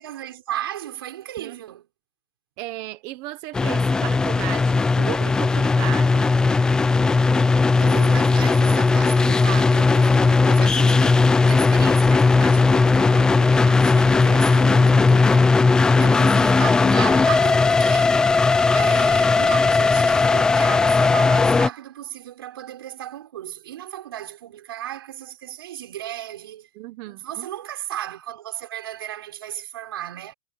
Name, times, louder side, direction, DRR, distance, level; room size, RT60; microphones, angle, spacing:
voice 1, 0.0-1.9 7.8-15.6 16.0-18.2 18.7-26.7 27.0-30.3, right 12 dB, 80° right, 6.6 m, -35 dB
voice 2, 2.6-6.3 26.8-27.5, right 18 dB, 30° right, 1.2 m, -35 dB
sound 1, 3.5-21.7, left 4 dB, 5° left, 0.8 m, -17 dB
supercardioid pair, 180°, 12 cm